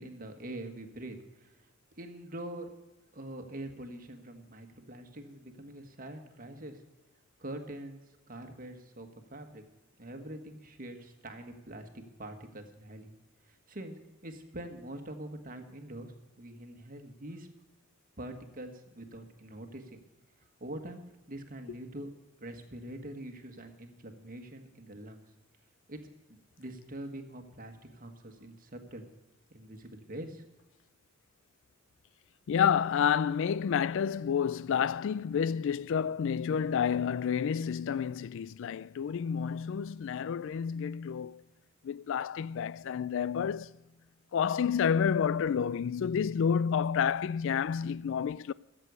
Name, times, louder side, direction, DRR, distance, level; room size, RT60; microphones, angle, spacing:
voice 1, 0.0-1.6 1.9-2.7 3.1-6.8 7.4-8.0 8.3-9.6 10.0-13.1 13.5-17.5 18.2-20.0 20.6-21.0 21.3-22.1 22.4-25.2 25.9-26.0 26.3-29.0 29.5-30.4, right 1 dB, 45° right, 1.6 m, -44 dB
voice 2, 32.5-41.4 41.8-43.7 44.3-48.5, left 7 dB, 65° left, 0.3 m, -29 dB
13.5 x 7.7 x 8.1 m
head